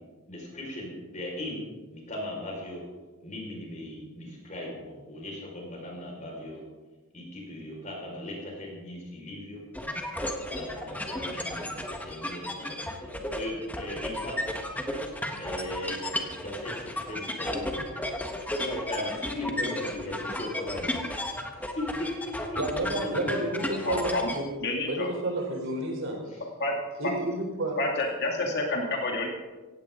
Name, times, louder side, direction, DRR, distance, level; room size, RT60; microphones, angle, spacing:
voice 1, 0.3-1.6 1.9-2.8 3.2-6.6 7.1-9.6 10.4-14.3 15.3-16.0 16.4-17.8 18.6-21.0 21.6-21.9, left 1 dB, 35° left, -1 dB, 5.1 m, -38 dB
sound 1, 9.7-24.4, left 1 dB, 5° left, 1.4 m, -34 dB
voice 2, 22.6-24.5 24.8-26.2 27.0-27.8, right 1 dB, 60° right, 2 dB, 3.8 m, -30 dB
voice 3, 23.8-24.2 24.6-25.1 26.6-26.7 27.0-27.1 27.8-29.3, left 2 dB, 50° left, 0 dB, 2.4 m, -28 dB
17.5 x 16.5 x 3.8 m, 1.2 s
head